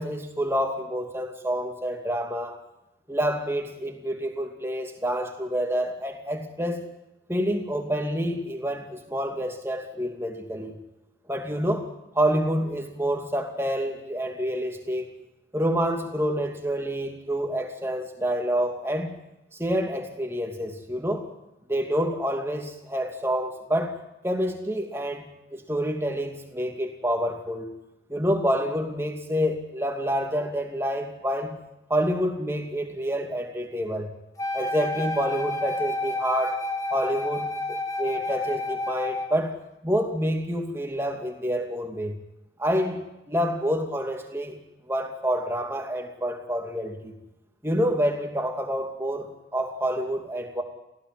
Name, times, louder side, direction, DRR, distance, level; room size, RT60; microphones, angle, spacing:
voice 1, 0.0-2.6 3.1-6.8 7.3-10.8 11.3-11.9 12.1-15.1 15.5-19.1 19.6-21.3 21.7-23.9 24.2-27.7 28.1-31.5 31.9-34.1 34.5-36.6 36.9-39.5 39.8-42.1 42.6-43.0 43.3-44.6 44.9-47.1 47.6-50.6, equal, 15° right, 3 dB, 2.6 m, -28 dB
Wind instrument woodwind instrument, 34.4-39.4, left 2 dB, 20° left, 1.6 m, -30 dB
18.0 x 16.0 x 9.7 m, 0.92 s
head